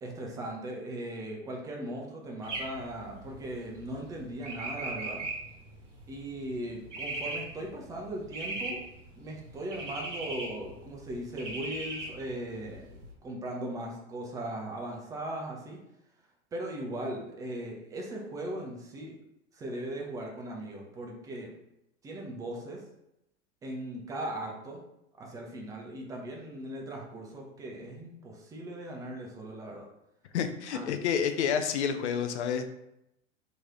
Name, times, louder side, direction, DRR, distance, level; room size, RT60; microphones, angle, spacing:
voice 1, 0.0-5.2 6.1-8.8 9.2-15.8 16.5-19.2 19.5-21.5 22.0-22.8 23.6-24.8 25.2-29.9 30.7-30.9, right 1 dB, 10° right, 0 dB, 0.3 m, -38 dB
sound 1, 2.4-13.1, right 2 dB, 75° right, 0.8 m, -40 dB
voice 2, 30.3-32.7, left 7 dB, 65° left, 8 dB, 0.5 m, -29 dB
3.0 x 2.8 x 2.4 m, 0.84 s
figure-of-eight pair, 85°, 37 cm